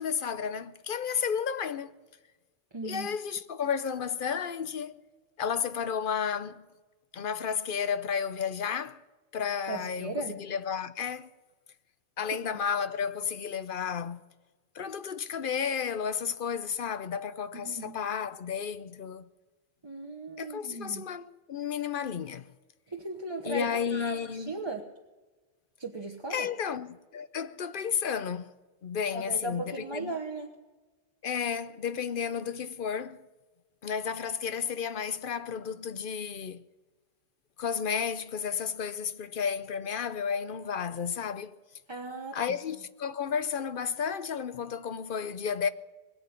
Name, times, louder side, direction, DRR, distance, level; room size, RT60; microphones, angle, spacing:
voice 1, 0.0-1.9 2.8-5.0 5.4-6.7 7.1-9.0 9.3-11.3 12.2-14.2 14.7-19.2 20.4-22.5 23.4-24.5 26.3-28.5 28.8-30.1 31.2-33.2 33.8-36.6 37.6-41.6 42.3-45.7, left 7 dB, 60° left, 0.8 m, -32 dB
voice 2, 2.7-3.2 9.7-10.4 12.5-12.6 17.5-17.9 19.8-21.0 22.9-24.9 25.8-26.5 29.1-30.5 41.9-42.6, right 2 dB, 25° right, 1.1 m, -37 dB
20.5 x 7.9 x 8.8 m
omnidirectional pair, 1.1 m